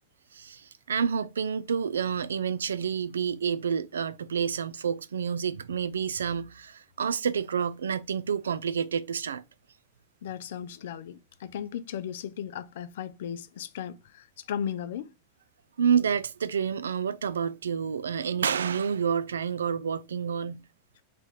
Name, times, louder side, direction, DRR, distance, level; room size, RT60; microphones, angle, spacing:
voice 1, 0.3-9.4 15.8-20.6, right 7 dB, 75° right, 0.3 m, -29 dB
voice 2, 10.2-15.1, left 9 dB, 65° left, 0.4 m, -36 dB
3.4 x 3.0 x 4.3 m
figure-of-eight pair, 95°, 0 cm